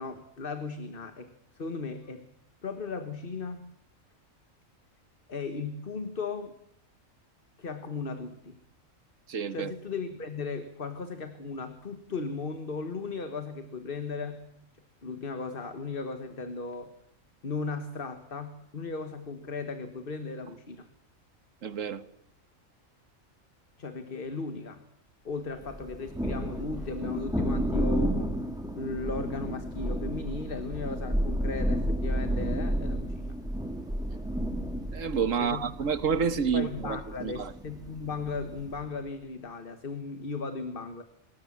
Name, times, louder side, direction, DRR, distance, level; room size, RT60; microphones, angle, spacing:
voice 1, 0.0-2.3 2.6-3.7 5.3-6.5 7.6-8.6 9.5-14.4 15.0-17.0 17.4-20.9 23.8-24.8 25.2-28.4 28.8-33.4 35.4-35.6 36.5-41.0, left 4 dB, 40° left, 1.7 m, -36 dB
voice 2, 9.3-9.7 21.6-22.0 34.9-37.5, right 6 dB, 70° right, 1.6 m, -29 dB
Thunder, 25.7-38.9, equal, 5° right, 2.6 m, -32 dB
26.0 x 21.0 x 7.4 m
omnidirectional pair, 1.4 m